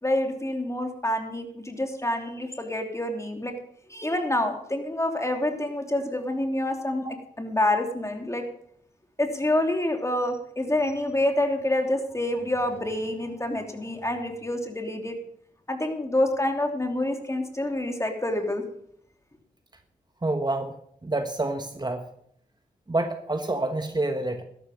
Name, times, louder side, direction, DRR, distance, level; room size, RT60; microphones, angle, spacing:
voice 1, 0.0-3.5 3.9-7.1 7.4-8.4 9.2-15.2 15.7-18.6, left 1 dB, 20° left, 4 dB, 3.2 m, -27 dB
voice 2, 20.2-20.8 21.0-22.0 22.9-24.4, right 2 dB, 25° right, 6 dB, 1.5 m, -27 dB
13.0 x 12.0 x 5.3 m, 0.67 s
cardioid pair, 40°, 16 cm